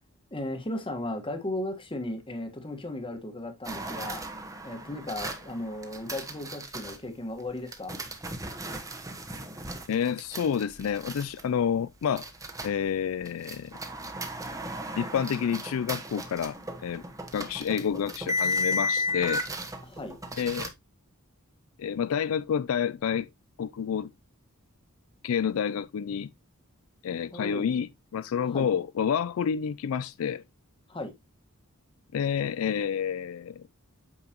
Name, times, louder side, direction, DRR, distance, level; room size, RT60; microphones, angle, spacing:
voice 1, 0.3-4.2 4.6-8.0 17.3-17.5 19.8-20.1 27.3-27.7 28.4-28.7 30.9-31.1, left 1 dB, 25° left, 1.5 m, -36 dB
sound 1, 3.6-7.0 7.7-12.9 13.2-20.7, left 1 dB, 15° right, 1.2 m, -35 dB
voice 2, 9.9-12.3 12.6-13.7 15.0-17.0 17.3-19.4 20.4-20.7 21.8-23.3 23.6-24.1 25.2-26.3 27.0-30.4 32.1-33.6, left 7 dB, 70° left, 0.4 m, -29 dB
8.7 x 5.9 x 2.9 m
head